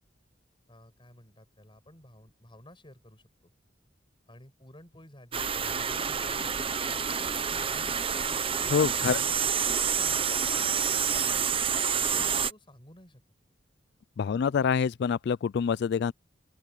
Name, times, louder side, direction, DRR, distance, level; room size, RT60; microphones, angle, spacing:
voice 1, 0.7-3.5 4.3-6.6 6.8-8.5 9.1-11.6 12.1-13.2, left 1 dB, 25° left, 5.7 m, -53 dB
sound 1, 5.3-12.5, right 7 dB, 30° right, 0.8 m, -28 dB
voice 2, 8.7-9.2 14.2-16.1, left 6 dB, 60° left, 0.3 m, -26 dB
open air
head